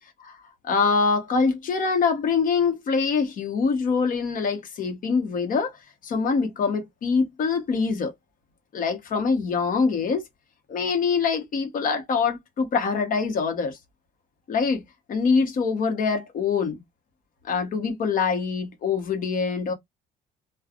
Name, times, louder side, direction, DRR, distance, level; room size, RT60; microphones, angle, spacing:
voice 1, 0.7-5.7 6.0-8.1 8.7-10.2 10.7-13.8 14.5-14.8 15.1-16.8 17.5-19.7, left 5 dB, 55° left, 1.2 m, -24 dB
3.1 x 2.3 x 2.5 m
cardioid pair, 110°, 17 cm